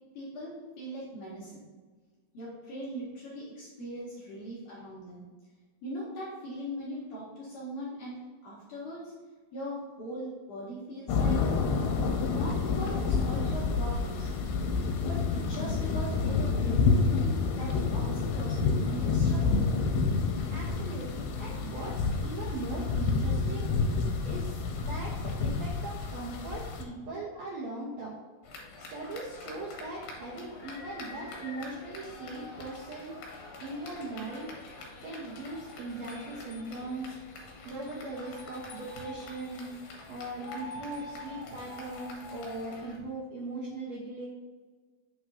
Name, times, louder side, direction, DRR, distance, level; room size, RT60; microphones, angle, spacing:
voice 1, 0.1-1.7 2.3-5.3 5.8-8.1 8.4-9.1 9.5-11.6 12.3-14.3 15.0-16.8 17.5-19.5, equal, 60° left, -7 dB, 3.0 m, -40 dB
sound 1, 11.1-26.8, left 4 dB, 90° left, 2.9 m, -28 dB
voice 2, 20.5-23.7 24.2-28.1 28.9-33.1 33.6-34.5 35.0-37.2 37.6-39.7 40.1-44.3, right 2 dB, 85° right, -5 dB, 1.5 m, -39 dB
sound 2, 28.4-43.0, left 2 dB, 75° left, 3.3 m, -45 dB
8.4 x 6.8 x 2.7 m, 1.4 s
omnidirectional pair, 4.7 m